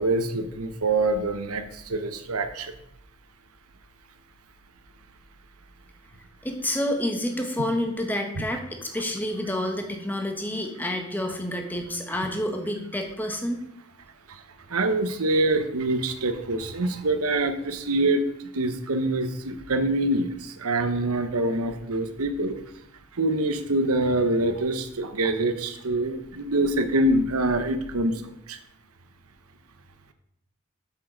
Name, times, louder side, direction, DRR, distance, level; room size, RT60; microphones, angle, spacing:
voice 1, 0.0-2.7 8.4-8.5 14.3-14.4 14.7-18.2 18.5-22.6 23.1-28.6, right 2 dB, 90° right, 9 dB, 0.9 m, -25 dB
voice 2, 6.4-13.6, left 1 dB, 10° left, 4 dB, 1.1 m, -29 dB
7.5 x 7.4 x 5.1 m, 0.80 s
head